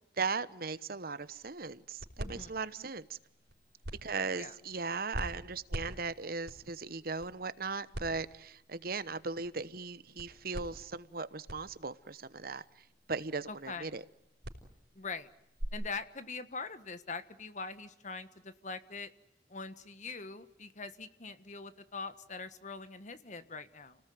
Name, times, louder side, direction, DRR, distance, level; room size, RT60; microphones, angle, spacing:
voice 1, 0.2-3.2 4.0-12.6 13.1-14.0, right 4 dB, 55° right, 15 dB, 1.0 m, -38 dB
sound 1, 1.2-15.7, equal, 75° right, 5.0 m, -46 dB
voice 2, 13.5-13.9 14.9-15.3 15.7-19.1 19.5-24.0, left 4 dB, 40° left, 12 dB, 1.5 m, -43 dB
30.0 x 19.0 x 9.4 m, 0.82 s
head